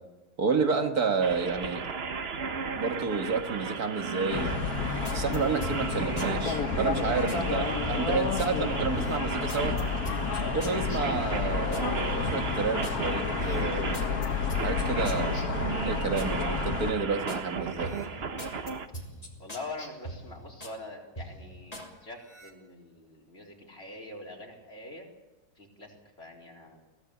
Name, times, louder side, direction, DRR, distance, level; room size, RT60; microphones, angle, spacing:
voice 1, 0.4-1.9 2.8-4.7 5.1-9.8 10.5-14.1 14.6-15.5 15.8-17.9, right 5 dB, 75° right, 5 dB, 2.2 m, -30 dB
sound 1, 1.2-18.9, right 5 dB, 45° right, 1.2 m, -36 dB
sound 2, 4.3-16.9, left 5 dB, 70° left, 1.8 m, -30 dB
sound 3, 4.5-7.4 7.8-8.6 8.9-11.9 12.3-13.0 13.4-16.3 16.7-17.5 17.8-20.8 21.2-21.9 22.2-22.5, right 1 dB, 25° left, 3.2 m, -42 dB
voice 2, 19.4-25.1 25.5-26.8, left 2 dB, 40° left, 1 dB, 4.6 m, -44 dB
22.5 x 16.5 x 8.5 m, 1.1 s
omnidirectional pair, 1.6 m